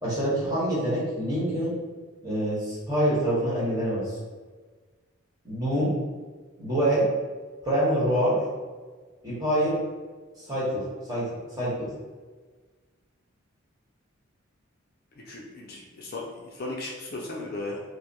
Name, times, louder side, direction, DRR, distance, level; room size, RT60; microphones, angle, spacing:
voice 1, 0.0-1.7 2.2-4.1 5.4-5.9 6.6-7.1 7.6-8.4 9.2-9.8 10.4-10.8 11.1-11.3 11.5-11.9, right 1 dB, 15° right, -8 dB, 1.2 m, -25 dB
voice 2, 15.2-17.8, left 2 dB, 45° left, -2 dB, 0.5 m, -36 dB
4.8 x 2.1 x 2.9 m, 1.4 s
head